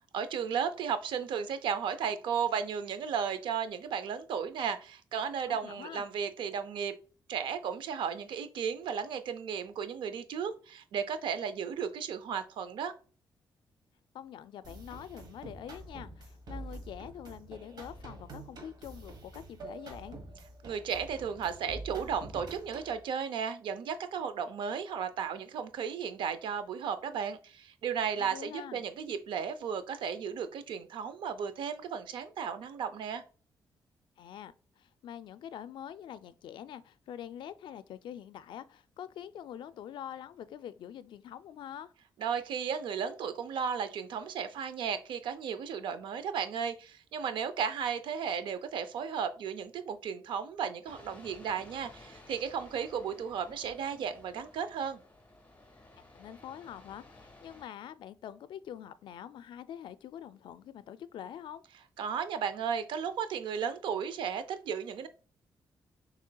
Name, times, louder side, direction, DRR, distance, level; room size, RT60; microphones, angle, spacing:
voice 1, 0.1-7.0 7.3-12.9 20.6-33.2 42.2-55.0 62.0-65.1, right 7 dB, 90° right, 0.5 m, -34 dB
voice 2, 5.5-6.1 14.1-20.2 28.2-28.8 34.2-41.9 56.1-61.6, left 10 dB, 80° left, 0.4 m, -45 dB
sound 1, 14.6-23.0, right 2 dB, 60° right, 1.3 m, -47 dB
sound 2, 50.8-57.6, left 2 dB, 20° left, 1.3 m, -55 dB
6.5 x 3.1 x 2.3 m
cardioid pair, 125°, 8 cm